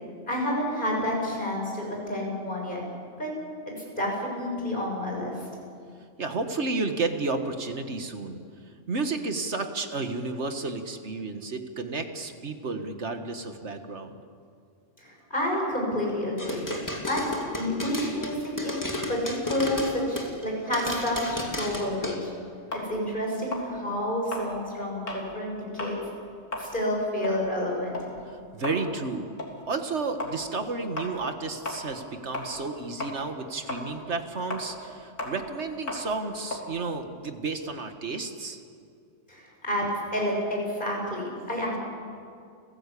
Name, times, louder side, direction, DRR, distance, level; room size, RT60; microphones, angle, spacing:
voice 1, 0.3-2.8 3.2-3.3 4.0-5.3 15.0-16.7 17.1-17.3 17.5-22.3 22.7-26.0 26.6-28.0 39.3-41.8, left 1 dB, 40° left, -1 dB, 6.8 m, -29 dB
voice 2, 6.2-8.4 8.9-14.2 28.3-29.3 29.7-38.6, right 3 dB, 65° right, 7 dB, 1.9 m, -32 dB
sound 1, 16.4-20.4 20.7-22.2, left 1 dB, 15° left, 2.5 m, -32 dB
sound 2, 22.7-25.3 25.7-26.0 26.4-32.7 33.0-37.8, left 1 dB, 85° left, 3.7 m, -37 dB
30.0 x 16.0 x 8.4 m, 2.4 s
omnidirectional pair, 1.3 m